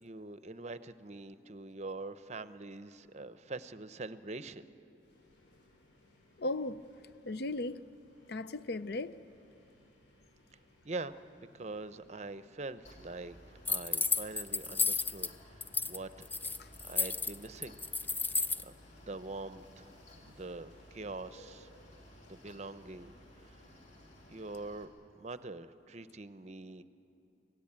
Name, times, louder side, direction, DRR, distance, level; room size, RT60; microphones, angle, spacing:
voice 1, 0.0-4.6 10.8-16.3 16.8-17.8 18.3-18.7 19.0-20.0 20.3-21.7 22.3-23.1 23.5-23.6 24.3-24.9 25.2-26.8, right 2 dB, 35° right, 0.7 m, -44 dB
sound 1, 5.0-24.7, left 1 dB, 75° left, 7.3 m, -64 dB
voice 2, 6.4-6.8 7.3-7.8 8.3-9.2 16.6-16.7, left 2 dB, 55° left, 0.6 m, -36 dB
Mechanical fan, 12.8-24.8, left 1 dB, 40° left, 3.1 m, -57 dB
sound 2, 13.7-15.3 15.6-16.0 16.2-18.6, left 4 dB, 10° left, 0.4 m, -32 dB
27.5 x 17.5 x 8.7 m
head